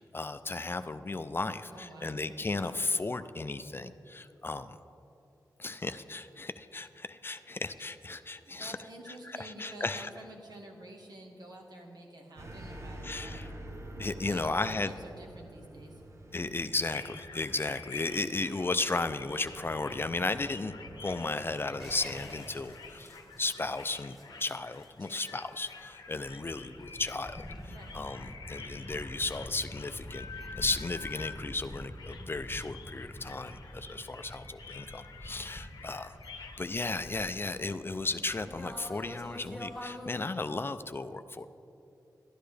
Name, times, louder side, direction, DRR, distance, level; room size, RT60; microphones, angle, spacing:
voice 1, 0.0-4.8 5.6-8.8 9.4-10.1 13.0-13.5 14.0-14.9 16.3-20.7 21.0-30.3 30.6-41.5, left 3 dB, 30° left, 11 dB, 0.4 m, -35 dB
voice 2, 1.7-2.2 8.4-13.4 14.3-16.0 25.0-25.2 27.7-27.9, right 1 dB, 75° right, 0 dB, 1.5 m, -49 dB
sound 1, 12.4-22.8, right 1 dB, 45° right, 0.8 m, -48 dB
sound 2, 16.9-36.6, left 5 dB, 80° left, 0.7 m, -49 dB
sound 3, 21.8-40.1, equal, ahead, 1.9 m, -47 dB
12.5 x 10.0 x 3.3 m, 2.8 s
cardioid pair, 65°, 7 cm